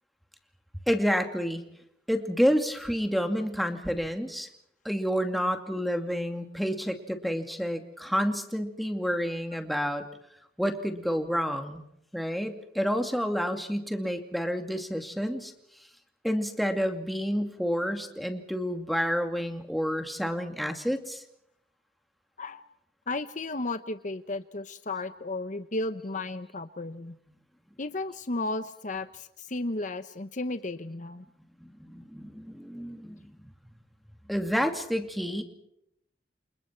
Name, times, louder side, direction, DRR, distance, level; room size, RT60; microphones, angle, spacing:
voice 1, 0.9-1.6 2.1-4.5 4.8-10.0 10.6-11.8 12.1-15.5 16.2-21.2 31.6-33.3 34.3-35.4, equal, ahead, 5 dB, 2.4 m, -29 dB
voice 2, 23.1-27.1 27.8-31.2, left 2 dB, 45° left, 11 dB, 1.0 m, -34 dB
29.5 x 27.5 x 4.6 m, 0.75 s
head